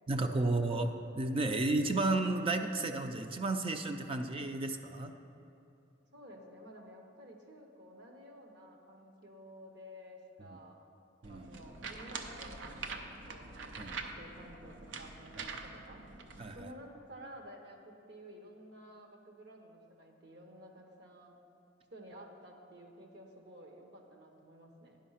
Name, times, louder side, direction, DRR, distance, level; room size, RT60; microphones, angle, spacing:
voice 1, 0.1-0.9 1.1-5.2 10.5-10.6 11.2-11.5 13.8-14.0 15.4-15.5 16.4-16.7, right 2 dB, 30° right, 6 dB, 0.4 m, -32 dB
voice 2, 6.1-10.8 11.2-16.1 16.5-21.4 21.9-25.0, equal, 65° right, 2 dB, 1.0 m, -53 dB
sound 1, 11.2-16.6, right 4 dB, 85° right, 0.6 m, -45 dB
10.0 x 5.5 x 5.6 m, 2.6 s
head